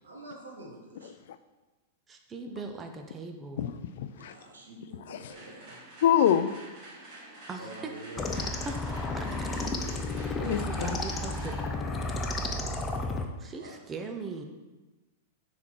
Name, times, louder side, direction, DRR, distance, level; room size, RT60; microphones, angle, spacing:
voice 1, 0.0-1.1 4.1-5.9 7.6-8.3 13.5-13.8, right 1 dB, 80° right, 0 dB, 1.4 m, -46 dB
voice 2, 2.1-3.7 7.5-7.6 8.2-11.6 13.4-14.4, right 4 dB, 20° right, 4 dB, 0.8 m, -40 dB
voice 3, 4.0-4.3 5.1-5.2 6.0-6.5 10.2-11.0, left 9 dB, 65° left, 11 dB, 0.4 m, -25 dB
sound 1, 5.3-13.3, right 1 dB, 45° right, 2.0 m, -49 dB
sound 2, 8.2-13.3, left 2 dB, 20° left, 0.6 m, -32 dB
6.0 x 4.2 x 4.6 m, 1.2 s
hypercardioid pair, 100°, 0 cm